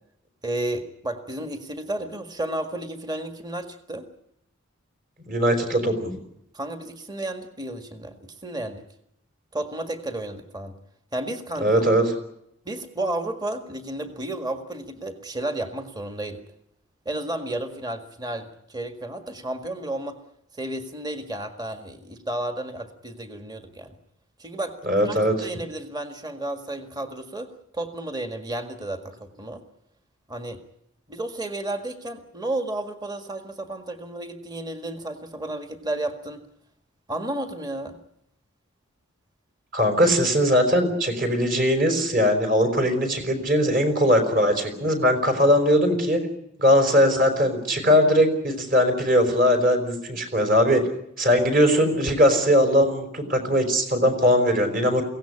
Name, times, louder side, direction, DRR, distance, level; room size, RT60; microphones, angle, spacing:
voice 1, 0.4-4.1 6.5-8.8 9.5-10.7 11.1-11.9 12.7-16.4 17.1-20.2 20.5-23.9 24.4-29.6 30.3-30.6 31.1-36.4 37.1-38.0, right 1 dB, 20° right, 6 dB, 1.8 m, -32 dB
voice 2, 5.3-6.1 11.6-12.0 24.8-25.4 39.7-46.2 46.6-50.8 51.2-55.0, equal, 40° right, 6 dB, 4.9 m, -20 dB
23.5 x 17.0 x 9.9 m, 0.79 s
head